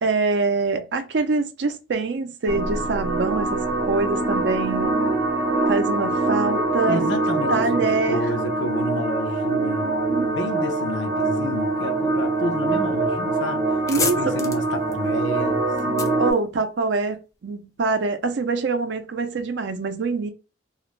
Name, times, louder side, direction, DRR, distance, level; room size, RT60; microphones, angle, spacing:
voice 1, 0.0-5.0 5.7-7.1 7.5-8.3 9.5-10.3 13.9-14.2 16.2-20.3, right 3 dB, 70° right, 0.5 m, -25 dB
sound 1, 2.5-16.3, right 2 dB, 50° right, 0.9 m, -24 dB
voice 2, 6.9-9.9 10.2-13.7 13.9-16.2, left 1 dB, 75° left, 0.5 m, -30 dB
sound 2, 13.3-13.4 13.6-17.2, left 4 dB, 15° left, 0.3 m, -32 dB
2.4 x 2.0 x 3.0 m
head